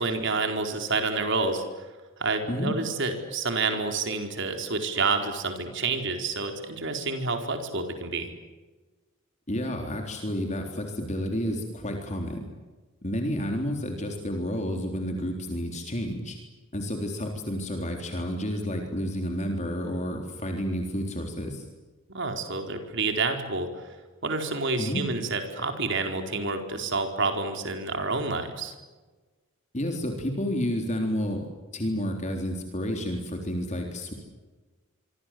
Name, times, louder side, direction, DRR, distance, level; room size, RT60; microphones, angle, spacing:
voice 1, 0.0-1.6 2.2-8.3 22.1-23.9 24.2-28.7, right 3 dB, 60° right, 5 dB, 4.5 m, -28 dB
voice 2, 9.5-12.4 13.0-16.4 16.7-21.6 24.8-25.0 29.7-31.5 31.7-34.1, equal, 35° left, 3 dB, 3.7 m, -30 dB
26.0 x 25.0 x 7.8 m, 1.3 s
head